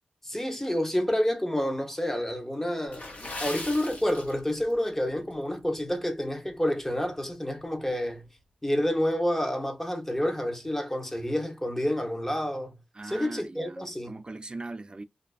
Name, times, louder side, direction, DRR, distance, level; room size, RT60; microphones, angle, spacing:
voice 1, 0.2-8.3 8.6-12.7 13.0-14.2, equal, 10° left, 0.8 m, -29 dB
Water / Splash splatter, 2.9-4.8 5.1-5.3 5.9-6.1 6.6-6.7, left 2 dB, 55° left, 1.0 m, -39 dB
voice 2, 13.0-15.0, right 2 dB, 30° right, 0.3 m, -40 dB
2.4 x 2.2 x 2.3 m
cardioid pair, 45°, 3 cm